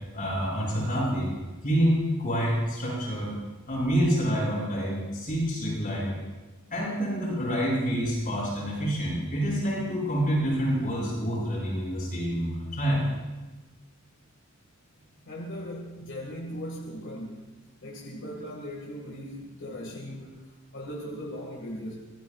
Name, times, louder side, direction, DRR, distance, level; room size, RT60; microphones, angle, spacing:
voice 1, 0.1-1.3 1.6-3.3 3.7-6.2 6.7-13.0, equal, 40° left, -5 dB, 7.1 m, -27 dB
voice 2, 15.3-17.5 17.8-22.0, equal, 65° left, -1 dB, 2.0 m, -38 dB
25.5 x 20.0 x 2.4 m, 1.2 s
head